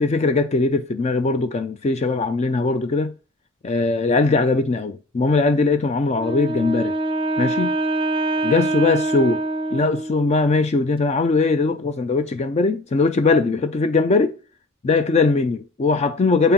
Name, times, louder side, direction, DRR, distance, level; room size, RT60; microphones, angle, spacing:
voice 1, 0.0-3.1 3.6-6.9 7.4-7.7 8.4-9.4 9.7-14.3 14.8-16.5, left 3 dB, 30° left, 0.3 m, -20 dB
Wind instrument woodwind instrument, 6.1-10.4, right 2 dB, 25° right, 0.5 m, -24 dB
7.9 x 4.3 x 3.7 m
head